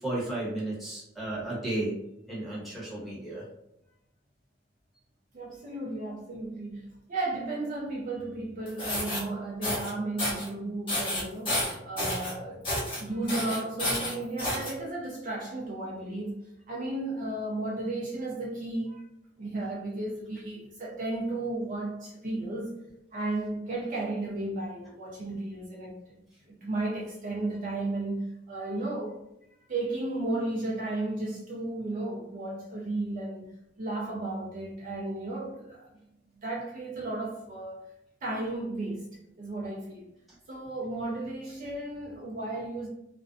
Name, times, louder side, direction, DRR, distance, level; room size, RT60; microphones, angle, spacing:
voice 1, 0.0-1.9 2.3-3.4, right 1 dB, ahead, 1.0 m, -33 dB
voice 2, 5.3-11.6 11.8-12.7 13.0-16.4 16.7-19.0 19.4-22.8 23.1-26.2 26.5-29.2 29.7-35.9 36.3-37.8 38.2-39.0 39.4-40.1 40.5-42.9, right 2 dB, 45° right, 0.4 m, -34 dB
sound 1, 8.7-9.2 9.6-9.9 10.2-10.5 10.9-12.3 12.6-13.0 13.3-14.7, left 1 dB, 30° left, 1.0 m, -30 dB
2.5 x 2.1 x 2.5 m
head